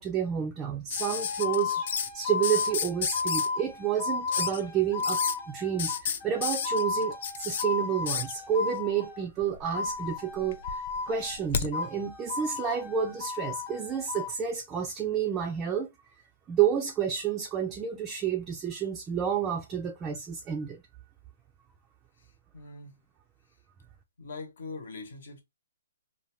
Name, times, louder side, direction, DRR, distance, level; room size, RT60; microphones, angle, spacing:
voice 1, 0.0-1.8 2.1-5.2 5.5-15.9 16.5-20.8, right 8 dB, 15° right, 0.4 m, -30 dB
sound 1, 0.9-2.1 2.4-3.5 4.3-4.6 5.0-5.3 5.8-7.6 8.1-8.3 9.4-10.0 10.3-11.7 13.1-13.2, left 7 dB, 50° left, 0.4 m, -32 dB
sound 2, 1.0-9.3 9.7-11.4 11.7-14.4, left 4 dB, 30° left, 1.0 m, -34 dB
voice 2, 22.2-23.0 24.2-25.4, left 3 dB, 70° left, 1.0 m, -42 dB
2.7 x 2.2 x 3.0 m
hypercardioid pair, 160°, 0 cm